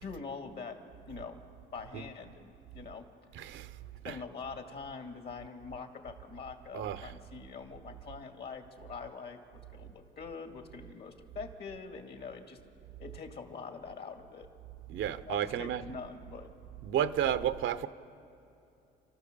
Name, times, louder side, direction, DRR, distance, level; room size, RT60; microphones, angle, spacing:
voice 1, 0.0-0.8 1.1-1.4 1.7-3.1 4.0-12.6 13.0-14.5 15.2-16.5, left 5 dB, 55° left, 5 dB, 2.3 m, -44 dB
voice 2, 3.3-3.7 4.0-4.2 6.7-7.1 14.9-15.8 16.8-17.9, right 10 dB, 75° right, 13 dB, 0.8 m, -32 dB
29.5 x 13.5 x 6.9 m, 2.8 s
cardioid pair, 90°, 20 cm